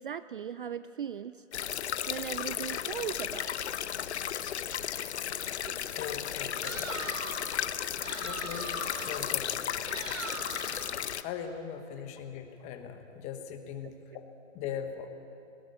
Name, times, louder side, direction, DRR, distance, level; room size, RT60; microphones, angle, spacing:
voice 1, 0.0-1.3 2.1-3.5, right 8 dB, 45° right, 14 dB, 0.4 m, -37 dB
sound 1, 1.5-11.2, left 9 dB, 55° left, 0.9 m, -34 dB
voice 2, 6.0-7.1 8.2-10.2 11.2-14.2 14.5-15.1, left 8 dB, 15° left, 7 dB, 1.1 m, -40 dB
sound 2, 6.6-7.5 8.0-9.3 9.8-10.9, right 2 dB, 85° right, 4.1 m, -40 dB
19.0 x 18.0 x 8.5 m, 2.7 s
hypercardioid pair, 150°, 39 cm